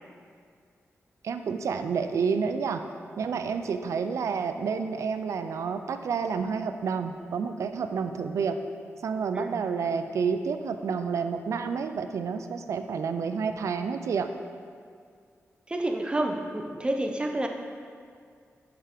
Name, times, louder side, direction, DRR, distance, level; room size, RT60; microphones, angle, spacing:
voice 1, 1.2-2.8 3.2-8.6 9.0-14.3, right 5 dB, 80° right, 8 dB, 0.4 m, -29 dB
voice 2, 15.7-17.5, right 1 dB, 20° right, 4 dB, 0.5 m, -29 dB
5.6 x 4.9 x 4.9 m, 2.1 s
wide cardioid pair, 115°, 5 cm